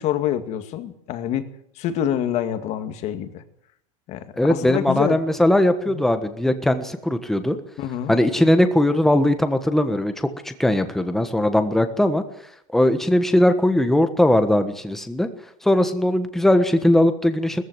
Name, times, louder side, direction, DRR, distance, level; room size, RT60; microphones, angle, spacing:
voice 1, 0.0-1.5 1.8-3.4 4.1-5.2 5.9-6.0 7.8-8.1, left 10 dB, 40° left, 9 dB, 2.2 m, -26 dB
voice 2, 4.4-7.6 8.1-12.2 12.7-15.3 15.6-17.6, left 1 dB, ahead, 8 dB, 1.4 m, -19 dB
19.5 x 14.5 x 9.5 m, 0.72 s
supercardioid pair, 150°, 17 cm